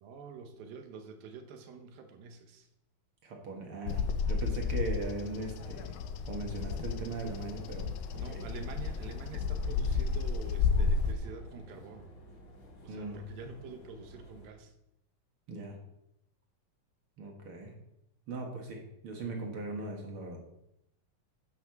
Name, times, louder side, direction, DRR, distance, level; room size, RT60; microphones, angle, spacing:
voice 1, 0.0-2.7 8.1-12.1 12.8-14.7, right 5 dB, 85° right, 6 dB, 2.8 m, -47 dB
voice 2, 3.2-4.0 4.3-5.9 6.3-7.9 8.1-8.4 12.9-13.2 15.5-15.8 17.2-17.7 18.3-20.4, right 2 dB, 50° right, 1 dB, 2.1 m, -39 dB
Bird vocalization bird call bird song, 3.9-11.1, left 5 dB, 85° left, 2.5 m, -32 dB
sound 1, 6.4-14.5, equal, 40° left, 2.3 m, -52 dB
10.0 x 5.8 x 5.9 m, 0.83 s
omnidirectional pair, 4.0 m